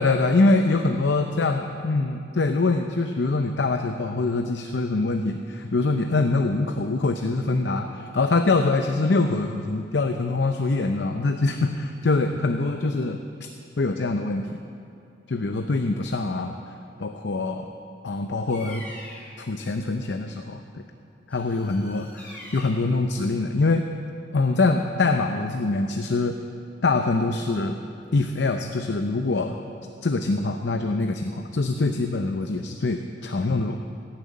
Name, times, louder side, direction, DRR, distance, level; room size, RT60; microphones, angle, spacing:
voice 1, 0.0-13.5 13.8-14.5 15.3-16.7 17.0-17.7 18.0-18.8 19.4-20.8 21.3-23.9 24.3-26.4 26.8-27.8 28.1-29.6 30.0-33.8, left 3 dB, 65° left, 5 dB, 0.6 m, -24 dB
Bird vocalization bird call bird song, 18.4-19.4 21.3-22.9, left 1 dB, 10° left, 2.7 m, -43 dB
15.5 x 7.5 x 8.6 m, 2.5 s
head